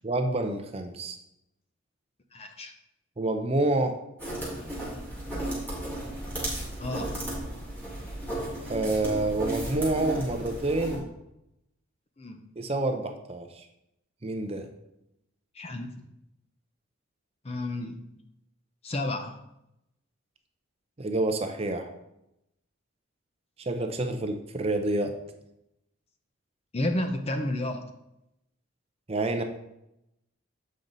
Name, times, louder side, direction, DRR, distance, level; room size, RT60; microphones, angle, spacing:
voice 1, 0.0-1.2 3.2-4.0 8.6-11.0 12.6-13.6 14.2-14.7 21.0-21.9 23.7-25.1 29.1-29.4, right 2 dB, 30° right, 6 dB, 0.5 m, -28 dB
voice 2, 2.3-2.7 6.8-7.2 12.2-12.4 15.5-16.0 17.4-18.0 18.8-19.4 26.7-27.8, left 1 dB, 30° left, 6 dB, 0.5 m, -31 dB
sound 1, 4.2-11.0, right 1 dB, 10° left, 2.0 m, -34 dB
7.6 x 5.3 x 3.9 m, 0.85 s
head